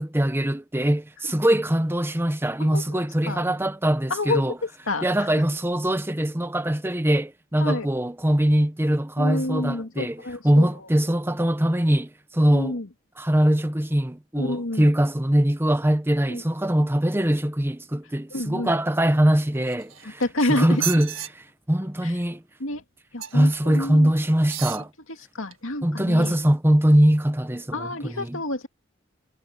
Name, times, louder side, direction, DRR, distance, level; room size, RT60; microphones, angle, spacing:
voice 1, 0.0-4.6 5.0-12.8 13.2-20.2 20.5-22.4 23.3-24.9 25.8-28.4, right 1 dB, 10° right, 0.9 m, -22 dB
voice 2, 2.6-3.0 3.3-3.4 4.1-5.3 7.6-7.9 9.2-10.7 12.5-12.9 14.3-14.9 16.3-16.4 18.3-18.7 20.0-20.8 22.0-22.1 22.6-22.8 23.1-24.1 25.3-26.4 27.7-28.7, left 2 dB, 75° left, 2.3 m, -29 dB
sound 1, 19.6-20.3 20.7-21.3 23.2-23.5 24.4-24.9 25.5-25.6, right 11 dB, 70° right, 1.8 m, -33 dB
head